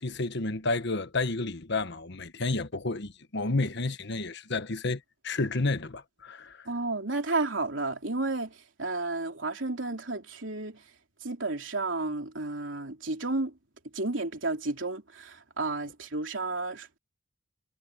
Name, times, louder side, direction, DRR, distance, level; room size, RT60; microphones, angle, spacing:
voice 1, 0.0-6.7, left 3 dB, 60° left, 1.3 m, -31 dB
voice 2, 6.7-10.8 11.2-13.5 13.9-17.0, right 2 dB, 70° right, 3.5 m, -32 dB
head